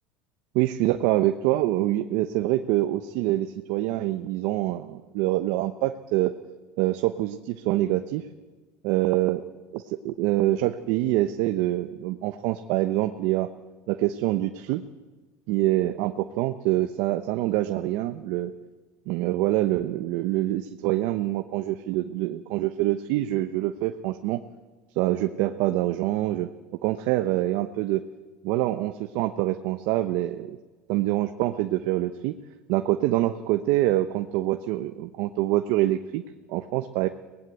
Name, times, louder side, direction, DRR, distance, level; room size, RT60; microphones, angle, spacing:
voice 1, 0.5-6.3 6.8-8.3 8.8-9.4 9.7-13.5 13.9-14.8 15.5-18.5 19.1-24.4 25.0-26.5 26.8-28.0 28.4-30.6 30.9-32.3 32.7-36.2 36.5-37.1, right 15 dB, 70° right, 8 dB, 0.9 m, -25 dB
23.0 x 19.0 x 8.3 m, 1.3 s
supercardioid pair, 125°, 7 cm